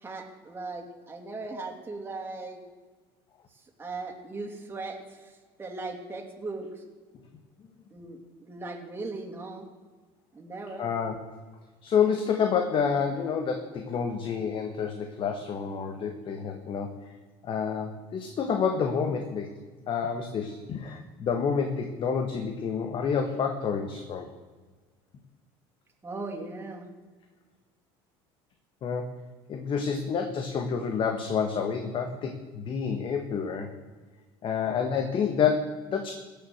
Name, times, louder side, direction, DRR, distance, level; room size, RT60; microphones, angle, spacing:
voice 1, 0.0-2.6 3.5-6.8 7.9-9.7 10.3-10.9 26.0-26.9, right 3 dB, 20° right, 0 dB, 2.8 m, -38 dB
voice 2, 10.8-11.1 11.8-16.9 17.4-19.5 19.9-24.3 28.8-29.1 29.5-33.7 34.4-36.1, left 6 dB, 45° left, 5 dB, 1.4 m, -28 dB
16.5 x 6.9 x 8.0 m, 1.4 s
supercardioid pair, 105°, 12 cm